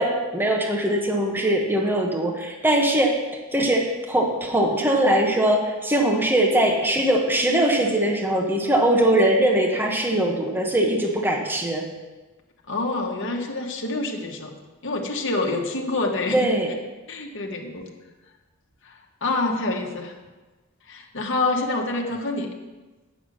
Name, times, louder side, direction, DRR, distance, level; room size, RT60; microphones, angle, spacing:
voice 1, 0.0-3.1 3.5-11.8 16.3-16.7, right 1 dB, 10° right, 0 dB, 1.1 m, -21 dB
voice 2, 12.7-14.5 14.8-16.5 17.1-17.9 18.8-18.9 19.2-20.1 20.9-22.5, left 2 dB, 60° left, 1 dB, 1.3 m, -27 dB
8.1 x 7.2 x 6.3 m, 1.2 s
head